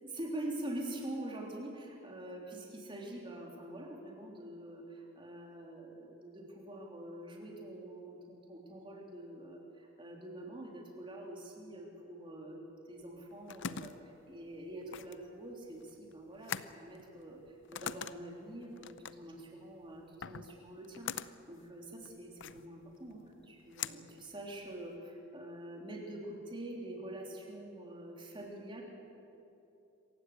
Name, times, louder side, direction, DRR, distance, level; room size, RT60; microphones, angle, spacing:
voice 1, 0.0-12.6 12.9-17.4 17.7-28.8, right 1 dB, 25° right, 0 dB, 3.4 m, -45 dB
sound 1, 13.0-25.0, left 8 dB, 60° left, 0.6 m, -45 dB
26.5 x 16.0 x 8.4 m, 2.9 s
head